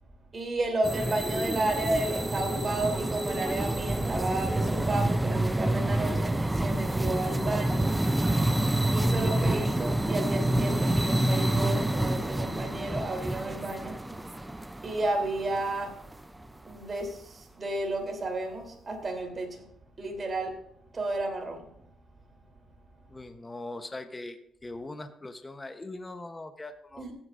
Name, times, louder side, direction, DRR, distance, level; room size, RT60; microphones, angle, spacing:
voice 1, 0.3-8.0 8.9-14.0 14.8-16.0 16.6-19.7 20.0-20.6 20.9-21.7 27.0-27.1, right 2 dB, 35° right, 3 dB, 3.3 m, -32 dB
sound 1, 0.8-16.1, right 1 dB, 10° right, 0.5 m, -28 dB
voice 2, 23.1-27.0, left 2 dB, 20° left, 8 dB, 1.0 m, -41 dB
15.0 x 9.8 x 2.6 m, 0.74 s
cardioid pair, 90°, 0 cm